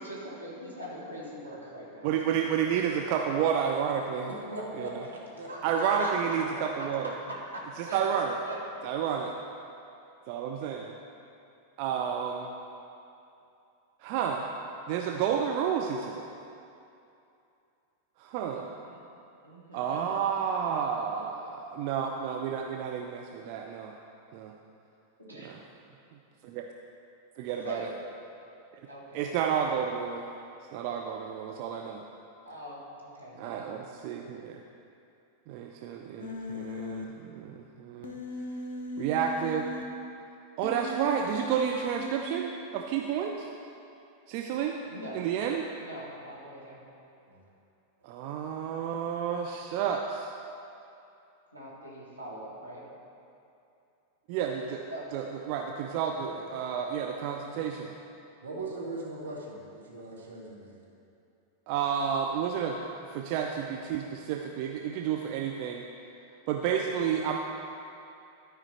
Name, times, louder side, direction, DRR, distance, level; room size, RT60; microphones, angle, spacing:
voice 1, 0.0-2.4 2.9-3.3 5.5-8.1 8.5-8.9 18.8-19.1 19.4-20.2 25.2-25.5 27.6-28.0 28.9-29.3 32.4-33.8 44.8-45.3 45.8-46.9 51.5-52.8 54.9-55.2, right 1 dB, 90° right, -6 dB, 1.8 m, -41 dB
voice 2, 2.0-4.3 4.8-5.0 5.6-7.2 7.8-8.4 8.8-9.3 10.3-11.0 11.8-12.5 14.0-14.5 14.9-16.3 18.2-18.7 19.7-23.9 24.3-24.5 25.4-25.6 26.4-26.7 27.4-27.9 29.1-30.3 30.7-32.0 33.4-34.6 35.5-38.2 39.0-39.7 40.6-43.5 44.3-44.7 45.1-45.6 48.0-50.3 54.3-54.8 55.1-57.9 61.7-62.8 63.1-65.8 66.5-67.4, right 7 dB, 45° right, 2 dB, 0.5 m, -31 dB
voice 3, 4.3-5.8 6.0-6.8 47.3-47.4 48.0-48.1 56.1-56.3 58.4-60.8, right 2 dB, 70° right, -3 dB, 1.7 m, -40 dB
Human voice, 36.2-37.0 38.0-39.8 40.6-42.3, left 1 dB, 60° left, 0.8 m, -38 dB
12.5 x 5.1 x 4.3 m, 2.7 s
figure-of-eight pair, 90°, 0 cm